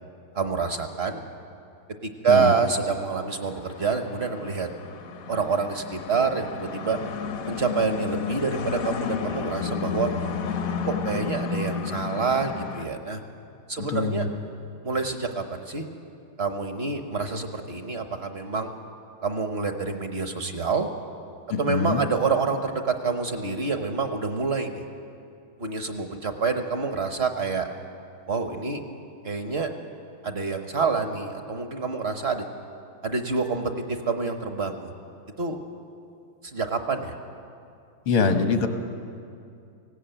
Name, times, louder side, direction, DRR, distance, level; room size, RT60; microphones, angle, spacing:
voice 1, 0.3-1.2 2.0-4.7 5.3-7.0 7.5-10.1 10.9-13.2 13.7-14.3 14.8-15.8 16.4-18.7 19.2-20.9 21.6-24.8 25.6-27.7 28.3-28.8 29.2-29.7 30.2-32.5 33.0-34.9 35.4-35.6 36.4-37.1, right 4 dB, 45° right, 6 dB, 0.9 m, -27 dB
sound 1, 3.2-12.9, left 6 dB, 55° left, 1.0 m, -32 dB
voice 2, 13.8-14.3 21.5-22.0 38.1-38.7, left 4 dB, 80° left, 6 dB, 2.2 m, -24 dB
18.5 x 16.5 x 9.0 m, 2.5 s
omnidirectional pair, 2.3 m